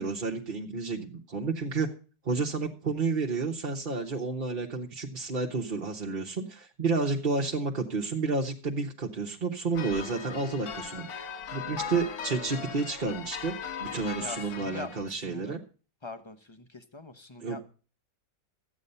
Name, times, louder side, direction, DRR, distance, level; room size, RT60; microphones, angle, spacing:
voice 1, 0.0-1.9 2.2-15.6 17.4-17.6, right 4 dB, 35° right, 0 dB, 1.0 m, -31 dB
sound 1, 9.7-15.1, left 6 dB, 60° left, 1.5 m, -39 dB
voice 2, 14.2-15.6 16.0-17.6, left 3 dB, 25° left, 9 dB, 0.7 m, -43 dB
13.0 x 8.8 x 5.4 m, 0.37 s
omnidirectional pair, 2.0 m